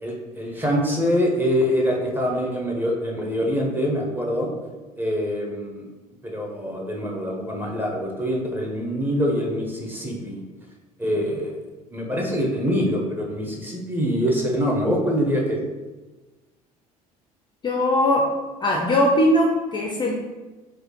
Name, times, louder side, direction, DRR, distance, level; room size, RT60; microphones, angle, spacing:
voice 1, 0.0-4.5 5.0-5.8 6.2-10.4 11.0-11.6 11.9-15.6, equal, 10° right, -1 dB, 0.9 m, -24 dB
voice 2, 17.6-18.3 18.6-20.1, left 1 dB, 25° left, 0 dB, 0.5 m, -20 dB
4.7 x 2.2 x 2.9 m, 1.2 s
figure-of-eight pair, 60°, 20 cm